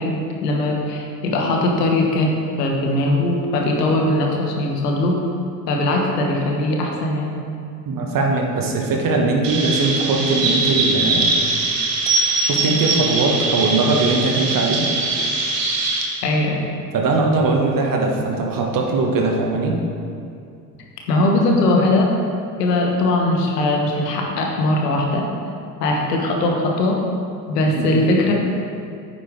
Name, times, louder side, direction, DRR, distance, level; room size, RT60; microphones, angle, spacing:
voice 1, 0.0-5.2 5.7-7.4 16.2-16.7 21.1-22.1 22.6-25.3 25.8-27.0 27.5-28.3, left 2 dB, 80° left, 0 dB, 1.6 m, -20 dB
voice 2, 7.9-11.4 12.2-14.8 16.9-19.8 27.7-28.0, right 3 dB, 45° right, 1 dB, 1.8 m, -20 dB
Chirp tweet, 9.4-16.0, right 3 dB, 80° right, 1.5 m, -21 dB
9.3 x 9.0 x 3.6 m, 2.4 s
hypercardioid pair, 70°, 48 cm